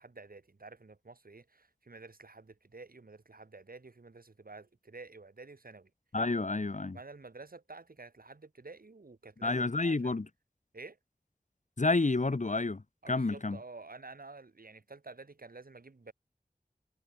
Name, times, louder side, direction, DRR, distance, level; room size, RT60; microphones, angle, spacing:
voice 1, 0.0-5.9 6.9-10.2 10.7-11.0 13.0-16.1, right 3 dB, 80° right, 2.8 m, -50 dB
voice 2, 6.1-7.0 9.4-10.3 11.8-13.6, left 3 dB, 55° left, 1.5 m, -30 dB
wide cardioid pair, 55°, 15 cm